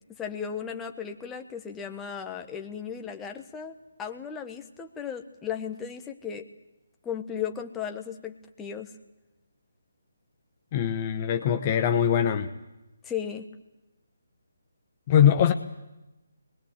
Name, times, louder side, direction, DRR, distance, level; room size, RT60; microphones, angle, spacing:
voice 1, 0.2-6.5 7.0-8.9 13.0-13.5, left 8 dB, 10° left, 4 dB, 1.3 m, -36 dB
voice 2, 10.7-12.5 15.1-15.5, left 9 dB, 25° left, 7 dB, 1.1 m, -22 dB
26.5 x 20.5 x 8.3 m, 0.96 s
figure-of-eight pair, 145°, 0 cm